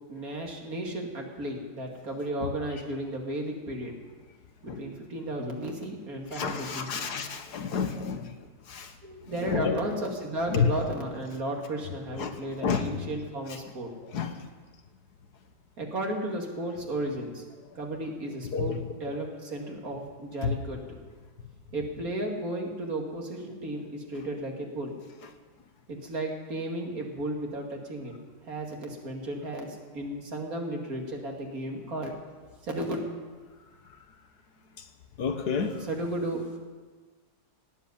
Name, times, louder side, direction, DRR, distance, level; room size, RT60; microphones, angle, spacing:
voice 1, 0.1-3.9 4.6-7.1 9.0-13.9 15.8-17.4 17.8-20.8 21.7-24.9 25.9-28.1 28.5-29.7 29.9-32.1 32.6-33.0 35.8-36.6, right 1 dB, 60° right, 1 dB, 2.8 m, -34 dB
voice 2, 6.3-8.3 8.7-8.9 9.4-9.8 10.5-10.7 12.2-13.0 14.1-14.3 18.5-18.8 20.4-20.5 35.2-35.8, left 6 dB, 75° left, 6 dB, 1.8 m, -29 dB
18.0 x 8.1 x 9.7 m, 1.4 s
omnidirectional pair, 1.7 m